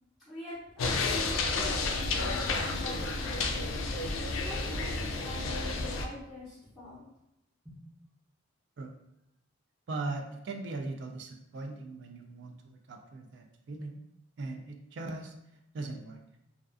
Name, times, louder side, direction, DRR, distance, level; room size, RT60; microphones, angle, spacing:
voice 1, 0.3-3.8 4.2-7.0 7.6-7.8, left 1 dB, ahead, -14 dB, 0.6 m, -44 dB
sound 1, 0.8-6.1, left 3 dB, 80° left, 0.3 m, -31 dB
voice 2, 9.9-14.0 14.4-15.3 15.7-16.2, right 3 dB, 60° right, 3 dB, 0.3 m, -39 dB
2.4 x 2.3 x 2.4 m, 0.86 s
head